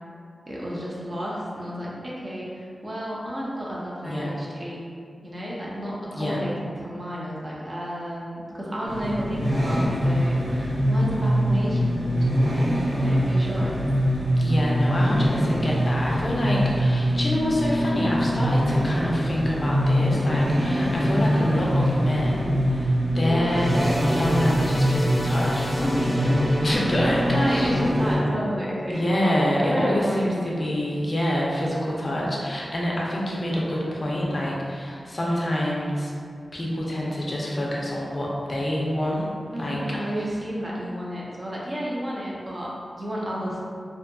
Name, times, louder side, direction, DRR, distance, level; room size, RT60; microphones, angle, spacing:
voice 1, 0.5-4.9 5.2-13.8 25.8-26.4 27.2-29.1 29.5-30.4 39.5-43.6, equal, 30° right, -5 dB, 0.5 m, -31 dB
sound 1, 8.8-28.2, equal, 85° right, 0.6 m, -23 dB
voice 2, 14.4-23.8 24.0-26.4 26.6-27.7 28.9-36.1 36.5-39.3 39.6-39.8, equal, 35° left, -5 dB, 0.4 m, -26 dB
sound 2, 23.1-30.8 31.2-31.4 32.3-32.4, equal, ahead, 0.9 m, -33 dB
2.6 x 2.4 x 2.2 m, 2.3 s
wide cardioid pair, 115°, 0 cm